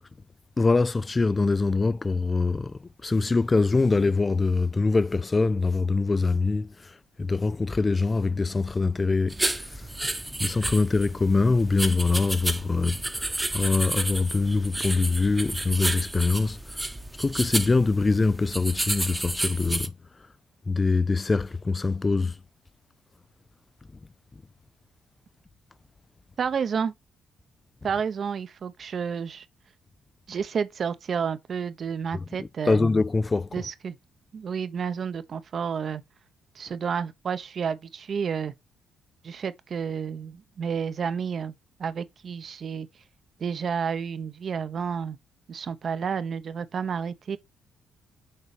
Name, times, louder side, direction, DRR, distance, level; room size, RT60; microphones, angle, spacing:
voice 1, 0.6-6.7 7.2-9.7 10.3-16.6 17.2-19.9 20.7-22.3 32.1-33.5, left 3 dB, 25° left, 0.4 m, -24 dB
sound 1, 9.3-19.9, right 1 dB, 10° right, 1.0 m, -31 dB
voice 2, 26.4-26.9 27.8-29.4 30.3-32.8 33.5-34.0 34.3-36.0 36.6-38.5 39.2-41.5 41.8-42.9 43.4-45.2 45.5-47.4, right 6 dB, 50° right, 0.8 m, -30 dB
6.7 x 4.1 x 5.0 m
cardioid pair, 90°, 0 cm